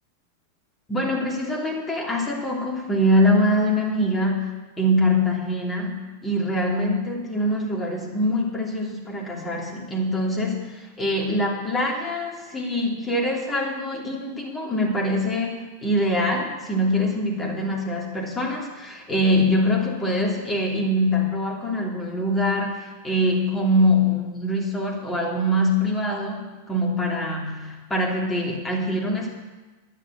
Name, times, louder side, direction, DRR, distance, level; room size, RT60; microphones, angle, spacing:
voice 1, 0.9-4.5 4.8-29.4, left 1 dB, 15° left, -1 dB, 3.2 m, -24 dB
11.0 x 10.5 x 7.5 m, 1.2 s
figure-of-eight pair, 90°, 0 cm